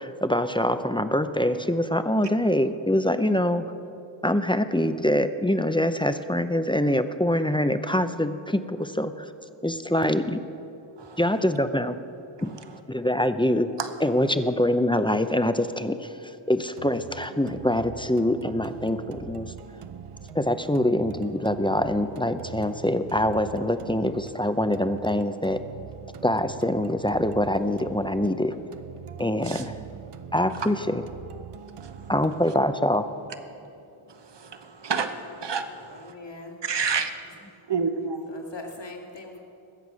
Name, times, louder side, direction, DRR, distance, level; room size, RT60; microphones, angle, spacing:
voice 1, 0.0-3.7 4.2-9.3 9.6-10.4 11.2-12.0 12.4-12.6 12.9-13.7 14.0-19.5 20.3-25.6 26.2-28.6 29.2-29.8 30.3-31.0 32.1-33.1, left 1 dB, 10° left, 10 dB, 0.6 m, -24 dB
voice 2, 12.5-12.8 13.8-13.9 29.4-29.7 31.8-32.1 34.1-36.1 36.6-37.4 37.7-38.3, right 5 dB, 55° right, 8 dB, 1.0 m, -30 dB
sound 1, 16.8-34.7, right 7 dB, 90° right, 0.7 m, -43 dB
voice 3, 35.9-36.6 38.3-39.4, left 2 dB, 55° left, 0 dB, 2.3 m, -41 dB
21.0 x 8.1 x 6.2 m, 2.7 s
wide cardioid pair, 65°, 50 cm